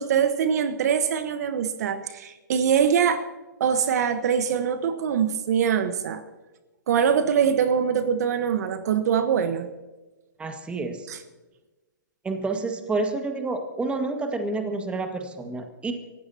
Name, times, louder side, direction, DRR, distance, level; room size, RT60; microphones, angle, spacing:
voice 1, 0.0-3.2 3.6-6.2 6.9-9.7 11.1-11.2, right 7 dB, 55° right, 10 dB, 1.3 m, -23 dB
voice 2, 10.4-11.1 12.2-15.9, right 3 dB, 10° right, 5 dB, 1.8 m, -29 dB
28.0 x 15.0 x 2.9 m, 1.2 s
hypercardioid pair, 125°, 10 cm